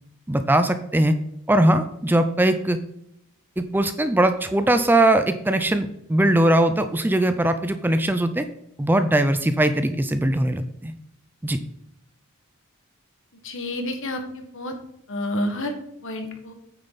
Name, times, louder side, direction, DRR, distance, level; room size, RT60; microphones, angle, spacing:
voice 1, 0.3-1.2 1.5-2.8 3.6-8.5 8.8-10.9 11.4-11.6, right 1 dB, 10° right, 9 dB, 0.4 m, -20 dB
voice 2, 13.4-14.8 15.1-15.7 16.0-16.5, left 1 dB, 60° left, 5 dB, 1.6 m, -29 dB
9.0 x 6.9 x 4.1 m, 0.78 s
head